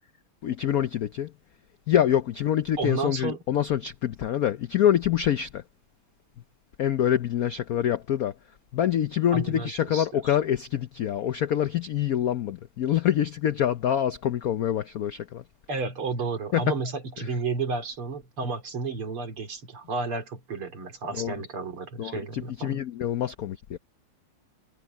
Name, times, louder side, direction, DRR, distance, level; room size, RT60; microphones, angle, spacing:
voice 1, 0.4-1.3 1.9-5.6 6.8-8.3 8.7-15.4 16.5-16.7 17.2-17.3 21.1-21.3 22.0-23.8, left 10 dB, 85° left, 0.7 m, -26 dB
voice 2, 2.8-3.4 9.3-10.4 15.7-22.8, right 4 dB, 75° right, 4.1 m, -32 dB
omnidirectional pair, 2.4 m